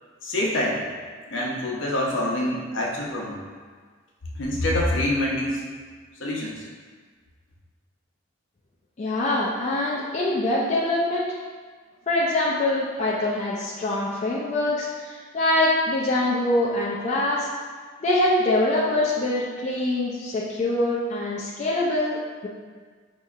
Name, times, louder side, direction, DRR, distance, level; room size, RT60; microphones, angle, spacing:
voice 1, 0.2-0.8 1.3-3.4 4.4-5.6 6.2-6.6, left 1 dB, 65° left, -3 dB, 0.7 m, -26 dB
voice 2, 9.0-11.3 12.1-17.5 18.0-22.5, left 1 dB, 35° left, -6 dB, 0.4 m, -24 dB
5.2 x 2.7 x 2.4 m, 1.5 s
head